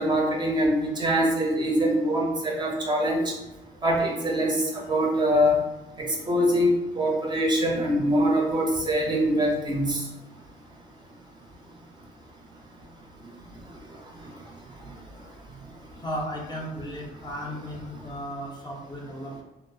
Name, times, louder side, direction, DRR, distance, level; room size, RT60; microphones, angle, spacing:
voice 1, 0.0-3.2 3.8-5.6 6.0-10.0, equal, 25° right, -1 dB, 0.5 m, -23 dB
voice 2, 16.0-19.4, equal, 25° left, -1 dB, 0.4 m, -35 dB
2.5 x 2.0 x 2.5 m, 1.0 s
cardioid pair, 110°, 17 cm